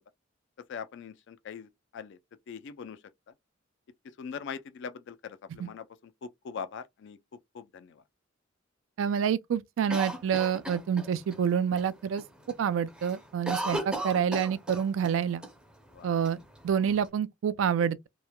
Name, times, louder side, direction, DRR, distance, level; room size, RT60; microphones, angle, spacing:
voice 1, 0.7-2.2 2.5-3.0 4.2-5.8 6.2-7.2 7.5-7.9 15.9-16.1, left 6 dB, 60° left, 0.3 m, -41 dB
voice 2, 9.0-12.2 12.6-15.4 16.0-18.1, right 7 dB, 70° right, 0.3 m, -28 dB
Cough, 9.9-11.4 11.8-11.9 12.2-12.6 12.9-15.1 15.4-15.5 16.2-17.0, right 2 dB, 5° right, 0.5 m, -35 dB
2.9 x 2.1 x 2.2 m
head